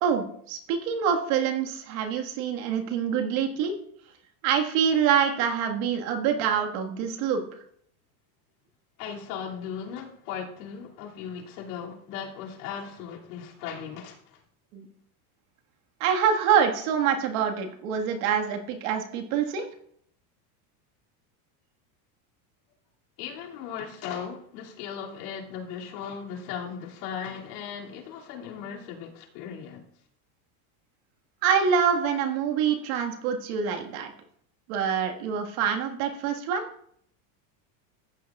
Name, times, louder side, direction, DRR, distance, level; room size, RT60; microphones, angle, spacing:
voice 1, 0.0-3.8 4.4-7.4 14.7-14.9 16.0-19.7 31.4-34.1 34.7-36.6, right 7 dB, 65° right, 1.8 m, -25 dB
voice 2, 9.0-14.4 23.2-29.8, left 7 dB, 80° left, 2.7 m, -37 dB
14.5 x 9.4 x 2.4 m
supercardioid pair, 145°, 46 cm